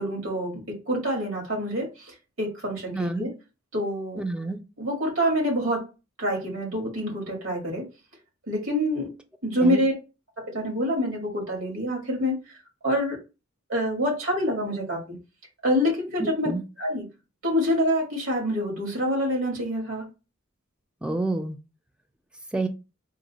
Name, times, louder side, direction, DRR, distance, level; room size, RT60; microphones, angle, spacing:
voice 1, 0.0-3.3 3.7-4.2 4.8-5.9 6.2-7.8 8.5-9.1 9.4-9.9 10.4-12.6 12.8-13.2 13.7-15.2 15.6-16.5 16.8-17.1 17.4-20.1, equal, 75° right, 1.8 m, -26 dB
voice 2, 2.9-3.3 4.2-4.6 9.6-9.8 16.2-16.6 21.0-21.6 22.5-22.7, right 2 dB, 5° right, 0.4 m, -28 dB
3.8 x 2.0 x 3.9 m
head